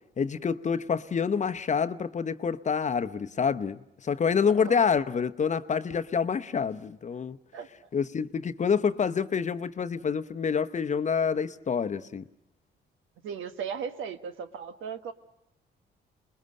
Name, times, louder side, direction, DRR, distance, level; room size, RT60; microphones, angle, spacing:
voice 1, 0.2-7.4 7.9-12.2, left 6 dB, 35° left, 0.8 m, -27 dB
voice 2, 4.6-4.9 7.5-7.7 13.2-15.1, right 7 dB, 80° right, 1.2 m, -37 dB
27.5 x 21.0 x 6.5 m
cardioid pair, 90°, 20 cm